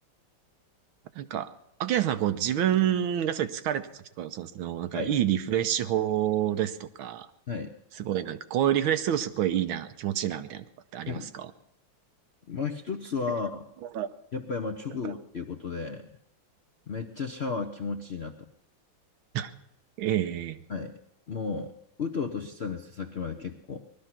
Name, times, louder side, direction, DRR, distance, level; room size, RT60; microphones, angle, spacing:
voice 1, 1.1-1.5 1.8-3.9 4.2-7.3 8.0-10.6 10.9-11.5 13.9-14.1 15.0-15.1 19.3-19.5 20.0-20.6, right 11 dB, 85° right, 11 dB, 1.6 m, -28 dB
voice 2, 12.5-13.7 14.3-16.1 16.9-18.5 20.7-20.9 21.3-21.7 22.0-23.8, left 5 dB, 60° left, 3 dB, 0.6 m, -33 dB
19.5 x 12.5 x 5.9 m, 0.79 s
omnidirectional pair, 2.2 m